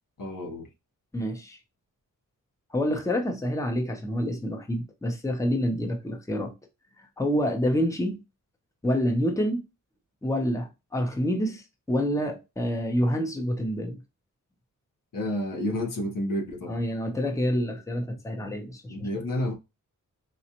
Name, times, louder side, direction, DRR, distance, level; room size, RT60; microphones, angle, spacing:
voice 1, 0.2-0.7 15.1-16.8 18.4-18.5 18.9-19.5, left 1 dB, 80° left, 1.0 m, -30 dB
voice 2, 1.1-1.6 2.7-6.5 7.0-8.2 8.8-9.6 10.2-14.0 16.7-19.1, equal, 10° left, 0.8 m, -27 dB
4.1 x 2.4 x 2.8 m
wide cardioid pair, 95°, 33 cm